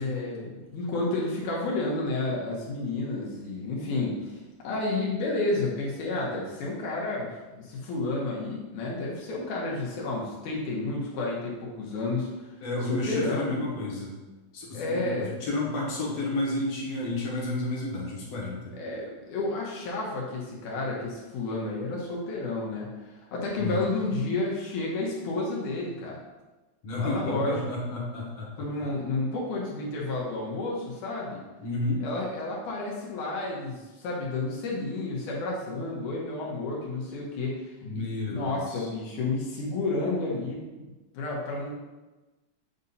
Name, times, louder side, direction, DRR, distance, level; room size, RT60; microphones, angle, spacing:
voice 1, 0.0-4.3 4.6-12.3 12.8-13.6 14.7-15.3 18.8-22.9 23.3-26.2 27.0-27.6 28.6-31.4 32.0-40.9 41.1-41.7, left 2 dB, 80° left, -4 dB, 2.6 m, -31 dB
voice 2, 12.6-14.1 14.5-18.7 23.6-23.8 26.8-28.7 31.6-32.0 37.8-38.9, left 2 dB, 55° left, -3 dB, 2.1 m, -31 dB
8.1 x 2.7 x 5.3 m, 1.2 s
omnidirectional pair, 3.6 m